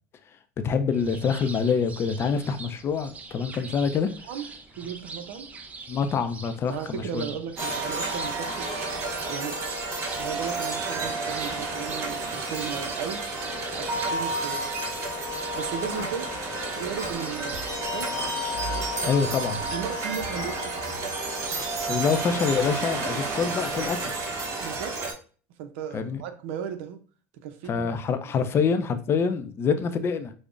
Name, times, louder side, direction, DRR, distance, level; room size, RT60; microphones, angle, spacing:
voice 1, 0.6-4.1 5.9-7.3 19.0-19.6 21.9-24.4 25.9-26.2 27.7-30.3, left 6 dB, 40° left, 0.4 m, -26 dB
sound 1, 0.9-19.8, right 4 dB, 20° right, 0.4 m, -43 dB
voice 2, 4.8-5.5 6.6-8.7 9.3-9.6 10.2-13.2 13.8-14.6 15.6-16.3 16.8-18.1 19.7-20.7 24.6-25.0 25.6-27.0 27.4-27.9, right 8 dB, 80° right, 0.5 m, -35 dB
sound 2, 7.6-25.1, right 2 dB, 50° right, 0.8 m, -31 dB
sound 3, 15.8-16.1 16.8-17.3 18.0-18.3 19.2-19.5 20.2-20.6 21.3-21.8 22.5-23.0 23.7-24.0, left 5 dB, 65° left, 0.7 m, -42 dB
5.1 x 2.1 x 2.4 m
supercardioid pair, 105°, 7 cm